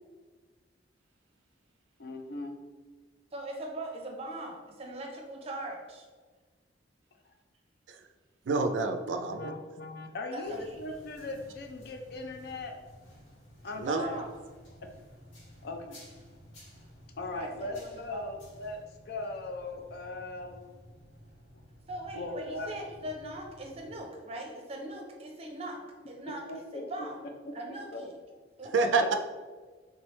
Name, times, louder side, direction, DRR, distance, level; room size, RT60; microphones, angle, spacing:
voice 1, 2.0-2.5 9.3-12.8 13.6-14.2 14.8-14.9 15.6-16.0 17.2-20.6 22.1-22.7 26.3-28.0, left 2 dB, 55° left, 4 dB, 0.4 m, -39 dB
voice 2, 3.3-6.1 10.3-10.6 13.8-14.3 17.3-18.3 21.9-25.8 26.1-26.4 26.7-27.3 27.5-28.1 28.6-29.0, right 1 dB, 30° right, 1 dB, 0.6 m, -40 dB
voice 3, 8.5-9.5 13.8-14.0 28.7-29.2, right 3 dB, 80° right, 7 dB, 0.4 m, -28 dB
sound 1, 10.4-24.0, equal, 90° left, 1.4 m, -54 dB
3.4 x 3.2 x 3.1 m, 1.4 s
head